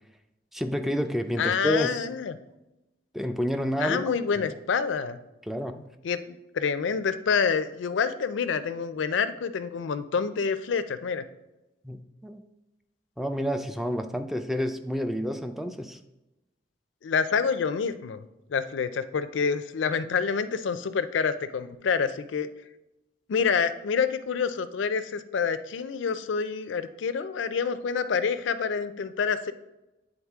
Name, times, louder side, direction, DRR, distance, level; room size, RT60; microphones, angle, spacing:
voice 1, 0.5-2.0 3.1-4.5 5.5-5.9 11.8-12.4 13.2-16.0, equal, ahead, 8 dB, 0.3 m, -29 dB
voice 2, 1.4-2.3 3.8-5.2 6.0-11.2 17.0-18.2 18.5-22.5 23.3-29.5, left 6 dB, 75° left, 12 dB, 0.4 m, -27 dB
8.7 x 3.9 x 3.5 m, 0.98 s
head